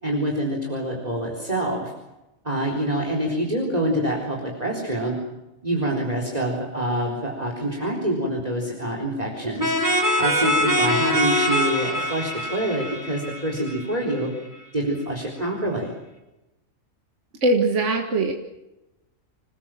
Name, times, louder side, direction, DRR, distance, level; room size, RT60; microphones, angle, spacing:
voice 1, 0.0-1.9 2.4-5.2 5.6-9.7 10.2-14.3 14.7-15.9, right 1 dB, 30° right, 1 dB, 4.1 m, -26 dB
sound 1, 9.6-14.2, equal, 15° right, 3.7 m, -23 dB
voice 2, 17.4-18.3, right 2 dB, 60° right, 3 dB, 2.1 m, -21 dB
26.5 x 20.5 x 7.6 m, 0.97 s
omnidirectional pair, 1.4 m